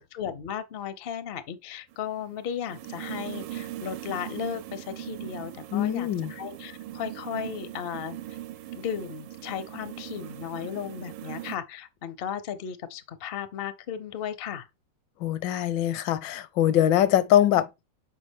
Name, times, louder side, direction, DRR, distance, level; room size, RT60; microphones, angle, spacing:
voice 1, 0.0-8.2 8.7-14.7, left 8 dB, 65° left, 0.5 m, -35 dB
sound 1, 1.9-11.6, right 13 dB, 80° right, 1.3 m, -40 dB
voice 2, 5.7-6.3 15.2-17.7, left 11 dB, 80° left, 1.3 m, -23 dB
6.7 x 4.8 x 3.4 m
omnidirectional pair, 2.0 m